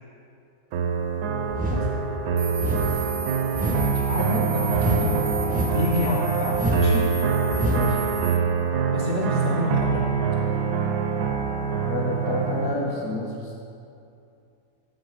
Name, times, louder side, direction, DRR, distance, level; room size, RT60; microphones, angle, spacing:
sound 1, 0.7-12.7, right 6 dB, 90° right, 1.2 m, -25 dB
sound 2, 1.5-1.9 2.6-2.9 3.5-3.9 4.7-5.1 5.5-5.9 6.5-6.9 7.5-7.9, right 1 dB, 10° right, 0.5 m, -26 dB
sound 3, 2.4-8.4, right 5 dB, 70° right, 0.6 m, -36 dB
voice 1, 4.1-5.2 5.7-7.1 8.9-10.2, left 1 dB, 50° left, -3 dB, 0.9 m, -27 dB
voice 2, 11.9-13.6, left 2 dB, 65° left, -2 dB, 1.2 m, -29 dB
8.0 x 6.1 x 5.1 m, 2.5 s
omnidirectional pair, 1.7 m